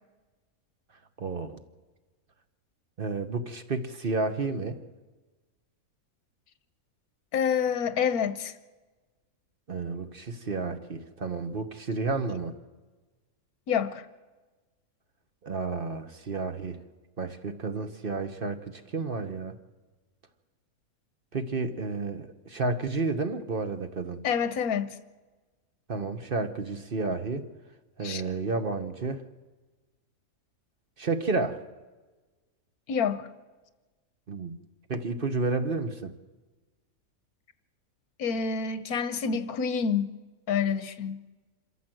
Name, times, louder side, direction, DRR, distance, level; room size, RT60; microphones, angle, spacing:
voice 1, 1.2-1.6 3.0-4.8 9.7-12.5 15.4-16.8 17.2-19.5 21.3-24.2 25.9-27.4 28.0-29.2 31.0-31.6 34.3-34.6 34.9-36.2, right 3 dB, 40° right, 1.1 m, -31 dB
voice 2, 7.3-8.5 13.7-14.1 24.2-25.0 28.0-28.2 32.9-33.3 38.2-40.2 40.5-41.2, left 7 dB, 85° left, 1.4 m, -28 dB
26.0 x 13.5 x 7.7 m
omnidirectional pair, 1.5 m